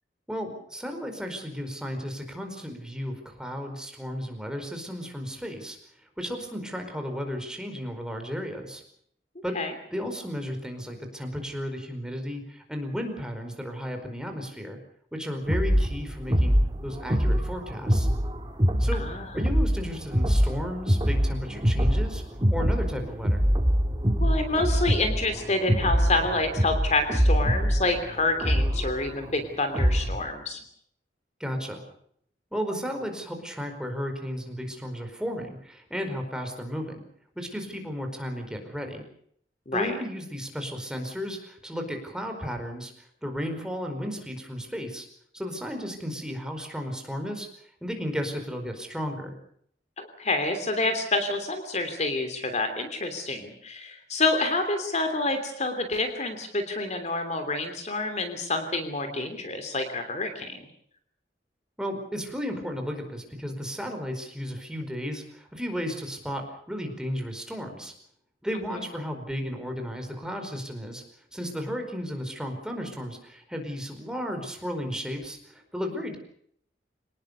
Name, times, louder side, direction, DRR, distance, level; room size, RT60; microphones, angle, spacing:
voice 1, 0.3-5.8 6.2-8.8 9.4-9.6 9.9-14.8 15.1-18.1 18.8-19.0 19.3-22.2 22.5-23.4 31.4-31.8 32.5-37.0 37.3-39.0 39.7-45.1 45.3-47.5 47.8-49.3 61.8-67.9 68.4-71.0 71.3-76.2, equal, 5° right, 4 dB, 4.8 m, -34 dB
sound 1, 15.5-30.3, equal, 25° right, 2.5 m, -24 dB
voice 2, 19.0-19.4 24.2-30.6 39.7-39.9 50.0-60.6 68.7-68.8, left 2 dB, 40° left, 7 dB, 3.1 m, -28 dB
26.0 x 19.5 x 6.9 m, 0.66 s
head